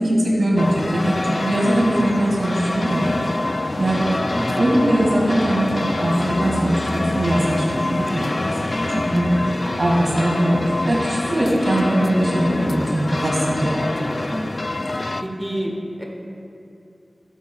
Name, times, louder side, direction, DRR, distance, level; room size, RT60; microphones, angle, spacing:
voice 1, 0.0-3.1 3.4-4.1 4.6-8.4 8.7-9.4 9.8-13.8, right 1 dB, 80° right, -3 dB, 2.0 m, -21 dB
sound 1, 0.6-15.2, left 2 dB, 55° left, 0.3 m, -25 dB
voice 2, 4.2-4.6 8.9-9.2 14.3-14.7 15.2-16.0, equal, 10° right, -2 dB, 1.7 m, -29 dB
15.0 x 8.4 x 2.3 m, 2.6 s
wide cardioid pair, 40°, 0 cm